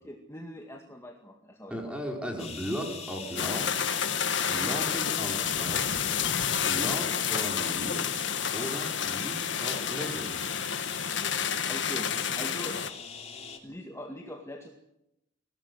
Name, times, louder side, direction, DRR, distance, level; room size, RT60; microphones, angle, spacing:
voice 1, 0.0-1.9 11.7-12.1 12.4-12.8 13.6-14.7, equal, 15° left, 2 dB, 2.0 m, -42 dB
voice 2, 1.7-3.7 4.5-5.9 6.6-8.1 8.5-10.4, equal, 5° right, 1 dB, 5.2 m, -36 dB
sound 1, 2.4-13.6, left 6 dB, 35° left, 3.2 m, -42 dB
sound 2, 3.4-12.9, left 8 dB, 60° left, 1.6 m, -30 dB
23.0 x 18.0 x 9.9 m, 0.87 s
head